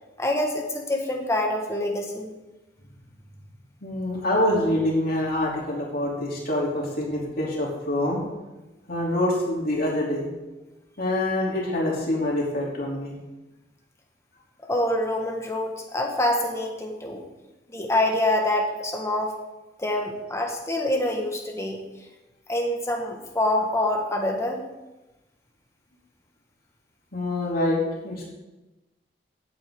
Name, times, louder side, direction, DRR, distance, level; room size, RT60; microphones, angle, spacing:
voice 1, 0.2-2.3 14.7-17.2 17.7-19.3 19.8-21.8 22.5-24.6, left 1 dB, 15° left, 1 dB, 1.6 m, -26 dB
voice 2, 3.8-8.2 8.9-10.3 11.0-13.1 27.1-28.3, left 1 dB, 55° left, -4 dB, 3.1 m, -25 dB
16.0 x 8.0 x 3.8 m, 1.1 s
head